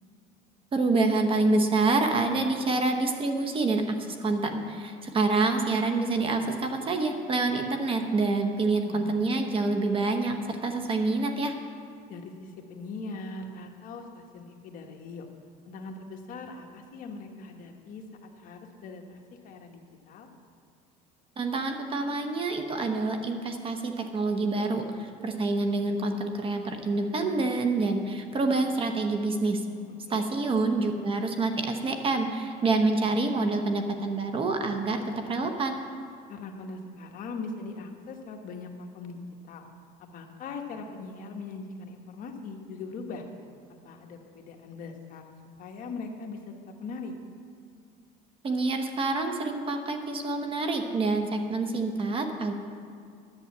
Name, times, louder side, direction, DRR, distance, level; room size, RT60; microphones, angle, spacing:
voice 1, 0.7-10.4 10.6-11.5 21.4-29.6 30.1-35.0 35.3-35.8 48.4-52.5, right 3 dB, 30° right, 5 dB, 1.0 m, -27 dB
voice 2, 8.9-9.2 12.1-15.3 15.7-20.3 30.1-30.2 36.3-39.2 39.4-39.7 40.0-43.2 43.8-45.2 45.6-47.1, left 3 dB, 45° left, 3 dB, 1.4 m, -41 dB
11.0 x 8.5 x 7.2 m, 2.4 s
cardioid pair, 145°, 19 cm